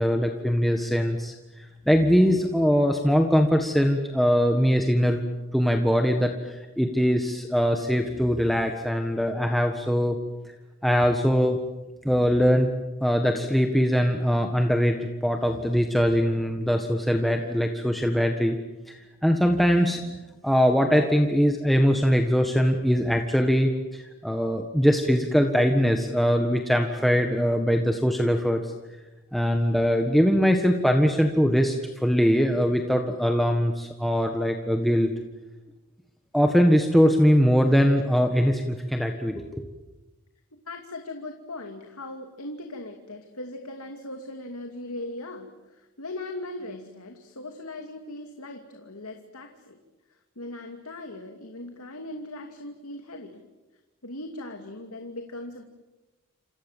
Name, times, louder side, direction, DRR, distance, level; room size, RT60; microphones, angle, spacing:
voice 1, 0.0-5.2 5.5-10.2 10.8-11.6 12.0-12.7 13.0-18.6 18.9-20.2 20.4-28.7 29.3-35.1 36.3-39.7, equal, ahead, 3 dB, 1.5 m, -22 dB
voice 2, 40.5-49.8 50.1-53.4 54.0-55.6, left 2 dB, 80° left, 4 dB, 2.6 m, -39 dB
29.0 x 27.5 x 7.5 m, 1.1 s
head